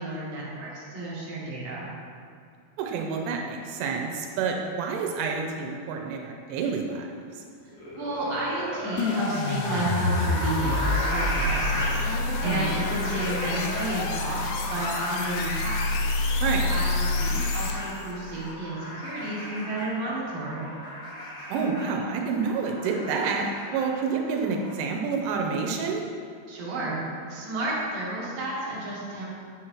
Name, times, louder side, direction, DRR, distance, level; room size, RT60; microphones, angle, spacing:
voice 1, 0.0-1.9 8.0-12.0 12.4-15.8 16.7-20.8 26.5-27.0 27.3-29.3, right 2 dB, 65° right, -6 dB, 2.5 m, -31 dB
voice 2, 2.8-7.0 12.4-12.7 16.4-16.7 21.5-26.0, right 5 dB, 85° right, 1 dB, 3.1 m, -28 dB
sound 1, 7.7-24.7, left 1 dB, 60° left, 1.5 m, -35 dB
sound 2, 9.0-18.1, left 3 dB, 85° left, 2.7 m, -28 dB
9.8 x 6.4 x 3.0 m, 2.3 s
omnidirectional pair, 5.5 m